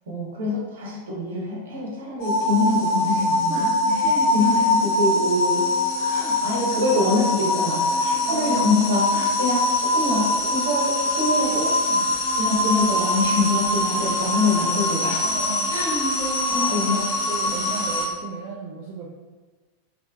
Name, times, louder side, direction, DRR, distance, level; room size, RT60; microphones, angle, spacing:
voice 1, 0.1-5.6 6.1-11.7 12.4-15.3 15.7-16.2 16.5-17.0 17.4-17.9, left 2 dB, 60° right, -4 dB, 0.9 m, -25 dB
sound 1, 2.2-18.1, left 2 dB, 40° left, 0.8 m, -23 dB
voice 2, 3.5-4.3 6.0-6.3 8.3-8.9 11.9-12.1 15.2-19.2, right 4 dB, 40° right, -4 dB, 0.4 m, -35 dB
3.3 x 2.8 x 2.3 m, 1.3 s
figure-of-eight pair, 90°, 0 cm